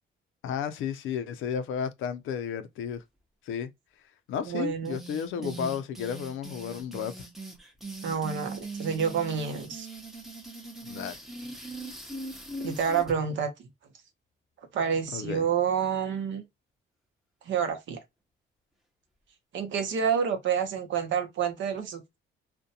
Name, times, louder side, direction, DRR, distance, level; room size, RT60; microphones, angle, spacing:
voice 1, 0.4-3.0 3.5-3.7 4.3-7.3 10.8-11.2 15.1-15.4, left 7 dB, 85° left, 0.5 m, -33 dB
voice 2, 4.4-5.0 5.4-5.8 8.0-9.9 12.6-13.5 14.7-16.4 17.4-18.0 19.5-22.2, right 7 dB, 70° right, 0.8 m, -29 dB
sound 1, 4.8-13.2, right 2 dB, ahead, 0.6 m, -41 dB
2.5 x 2.1 x 2.6 m
cardioid pair, 90°, 20 cm